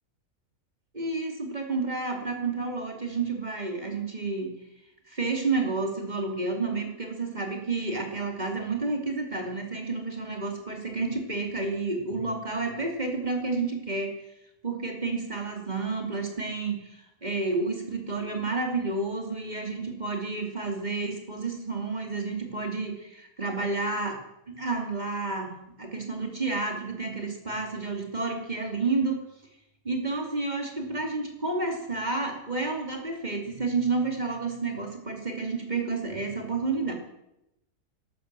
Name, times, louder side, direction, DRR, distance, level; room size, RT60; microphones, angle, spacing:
voice 1, 0.9-4.5 5.1-14.1 14.6-24.2 24.5-25.5 25.8-29.2 29.8-36.9, right 3 dB, 30° right, 2 dB, 2.8 m, -30 dB
12.5 x 12.5 x 7.6 m, 0.87 s
omnidirectional pair, 1.6 m